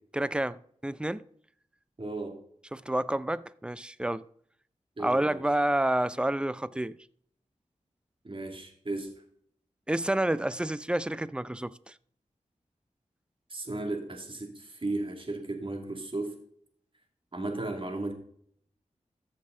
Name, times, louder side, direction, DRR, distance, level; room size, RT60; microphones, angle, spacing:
voice 1, 0.1-1.2 2.7-4.2 5.0-7.0 9.9-11.9, right 1 dB, 5° right, 0.4 m, -29 dB
voice 2, 2.0-2.4 5.0-5.4 8.2-9.1 13.5-16.3 17.3-18.1, right 2 dB, 45° right, 2.4 m, -35 dB
14.5 x 6.7 x 3.9 m
wide cardioid pair, 60°, 13 cm